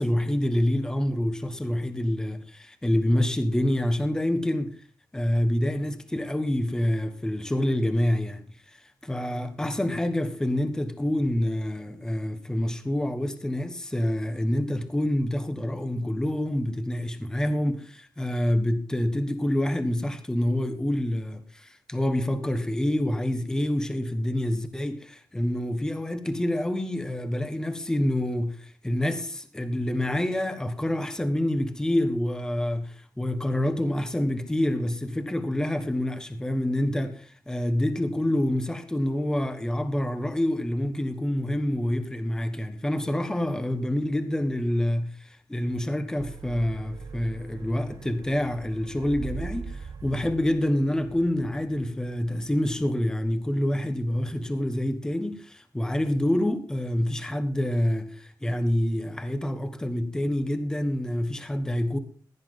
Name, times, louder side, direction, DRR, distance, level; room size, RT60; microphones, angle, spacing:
voice 1, 0.0-4.7 5.1-62.0, left 1 dB, 10° left, 1.3 m, -27 dB
sound 1, 46.2-52.9, right 5 dB, 60° right, 1.1 m, -41 dB
16.5 x 10.0 x 3.8 m
wide cardioid pair, 130°, 7 cm